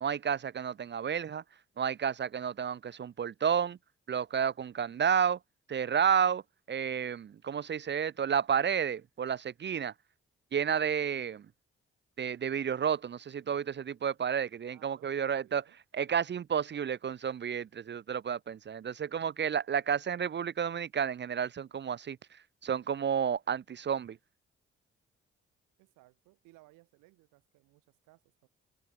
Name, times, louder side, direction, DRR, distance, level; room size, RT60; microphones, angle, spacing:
voice 1, 0.0-1.4 1.8-3.8 4.1-5.4 5.7-6.4 6.7-9.9 10.5-11.4 12.2-15.6 15.9-22.2 22.6-24.2, right 7 dB, 35° right, 0.6 m, -31 dB
voice 2, 14.6-15.8 25.8-28.5, right 21 dB, 80° right, 7.4 m, -62 dB
hypercardioid pair, 40°, 30 cm